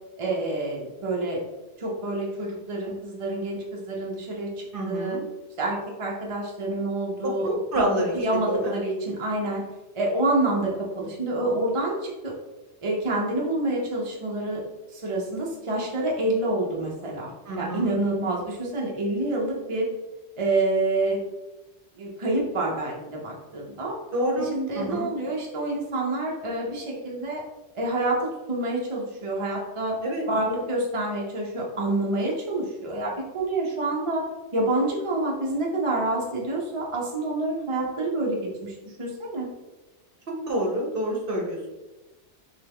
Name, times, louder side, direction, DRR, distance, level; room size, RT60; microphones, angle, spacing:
voice 1, 0.2-1.4 1.8-5.2 5.6-7.5 7.8-7.9 8.1-9.6 9.9-12.3 12.8-14.6 14.9-19.9 20.4-21.2 22.0-23.9 24.4-27.4 27.7-30.0 30.3-34.2 34.5-39.5, right 2 dB, 30° right, -3 dB, 0.7 m, -27 dB
voice 2, 4.7-5.2 7.2-8.1 8.5-8.7 17.5-17.9 24.1-24.5 24.7-25.1 30.0-30.2 40.5-41.7, right 1 dB, 50° right, -1 dB, 1.0 m, -27 dB
3.8 x 3.4 x 3.4 m, 1.1 s
omnidirectional pair, 1.2 m